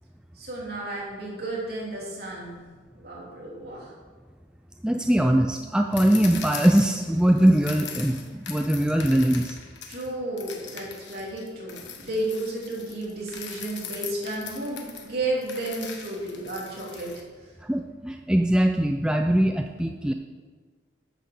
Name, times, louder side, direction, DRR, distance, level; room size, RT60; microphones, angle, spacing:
voice 1, 0.4-2.6 2.9-3.9 9.9-17.1, right 2 dB, 55° right, -4 dB, 3.1 m, -32 dB
voice 2, 4.8-9.6 17.6-20.1, right 1 dB, 5° right, 4 dB, 0.3 m, -21 dB
sound 1, 5.9-10.1 10.4-17.2, left 7 dB, 70° left, 1.2 m, -40 dB
9.1 x 6.4 x 6.7 m, 1.5 s
head